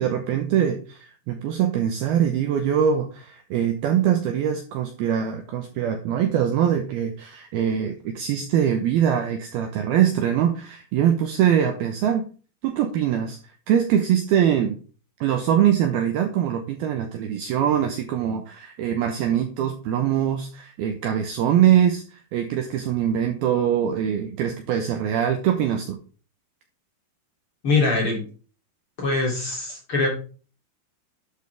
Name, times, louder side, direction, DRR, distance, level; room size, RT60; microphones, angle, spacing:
voice 1, 0.0-12.3 12.6-13.4 13.7-14.8 15.2-26.0, right 9 dB, 75° right, 6 dB, 2.3 m, -23 dB
voice 2, 27.6-28.3 29.0-30.1, left 3 dB, 30° left, -2 dB, 3.5 m, -23 dB
12.0 x 7.4 x 3.5 m, 0.38 s
omnidirectional pair, 5.4 m